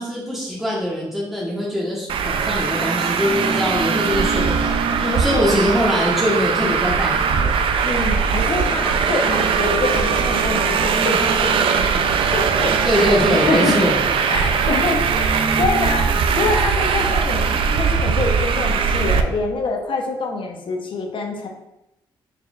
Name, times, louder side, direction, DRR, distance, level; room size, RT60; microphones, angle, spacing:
voice 1, 0.0-4.7 5.0-7.5 12.8-14.0, equal, 5° right, -6 dB, 1.3 m, -22 dB
Traffic noise roadway noise, 2.1-19.2, right 6 dB, 65° right, 0.4 m, -20 dB
voice 2, 5.0-5.4 7.8-13.0 13.4-13.7 14.3-21.5, left 3 dB, 60° left, 2 dB, 0.8 m, -25 dB
4.3 x 4.2 x 2.4 m, 0.90 s
supercardioid pair, 50°, 10 cm